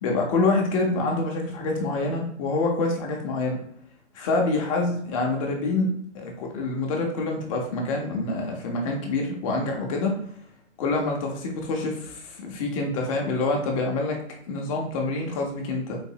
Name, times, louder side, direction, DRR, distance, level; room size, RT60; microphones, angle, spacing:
voice 1, 0.0-3.6 4.1-5.9 6.1-10.2 10.8-14.2 14.5-16.0, left 3 dB, 30° left, 1 dB, 0.7 m, -26 dB
3.9 x 2.6 x 2.7 m, 0.65 s
hypercardioid pair, 145°, 36 cm